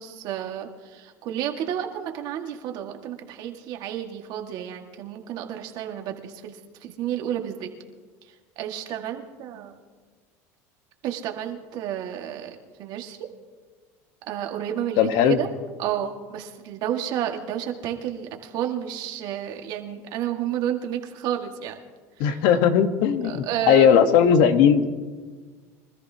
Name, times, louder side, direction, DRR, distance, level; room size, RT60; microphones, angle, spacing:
voice 1, 0.0-7.7 8.6-9.7 11.0-13.3 14.3-15.5 15.8-21.8 22.2-22.4 23.2-24.0, right 10 dB, 60° right, 4 dB, 1.8 m, -31 dB
voice 2, 15.0-15.4 22.2-24.9, left 8 dB, 65° left, 8 dB, 1.2 m, -18 dB
24.5 x 13.5 x 2.8 m, 1.5 s
supercardioid pair, 110°, 8 cm